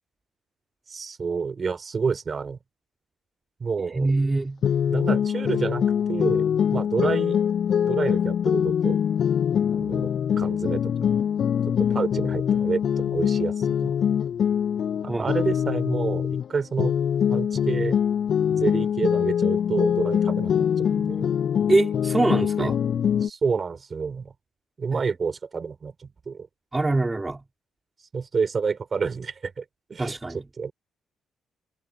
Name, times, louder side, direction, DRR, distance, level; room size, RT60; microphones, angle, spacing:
voice 1, 0.9-2.6 3.6-4.1 4.9-7.4 7.8-9.0 9.7-11.1 11.7-13.9 15.0-16.9 17.3-18.0 18.5-21.3 22.6-22.7 23.2-24.3 24.8-26.5 28.1-29.6 29.9-30.1 30.6-30.7, right 5 dB, 40° right, 4.5 m, -29 dB
voice 2, 3.9-4.6 7.0-7.1 15.1-15.3 21.7-22.7 24.9-25.0 26.7-27.4 30.0-30.4, right 2 dB, 20° right, 2.9 m, -24 dB
sound 1, 4.6-16.5 16.8-23.3, left 8 dB, 60° left, 7.5 m, -23 dB
cardioid pair, 90°, 0 cm